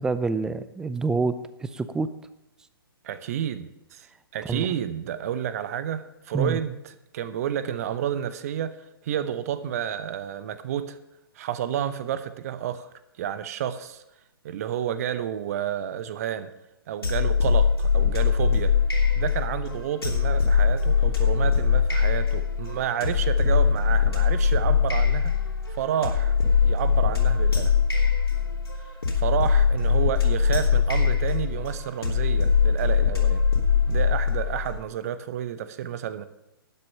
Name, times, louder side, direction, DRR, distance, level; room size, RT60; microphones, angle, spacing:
voice 1, 0.0-2.1 4.5-4.7 6.3-6.6, right 4 dB, 5° right, 14 dB, 0.4 m, -27 dB
voice 2, 3.0-4.1 4.3-8.8 9.0-11.0 11.4-12.9 13.2-14.0 14.4-16.5 16.9-18.7 19.2-25.3 25.7-26.3 26.6-27.7 29.2-33.4 33.9-36.2, right 9 dB, 40° right, 13 dB, 0.8 m, -30 dB
sound 1, 17.0-34.8, left 6 dB, 80° left, 3.1 m, -22 dB
12.0 x 9.1 x 5.5 m, 0.91 s
figure-of-eight pair, 120°, 13 cm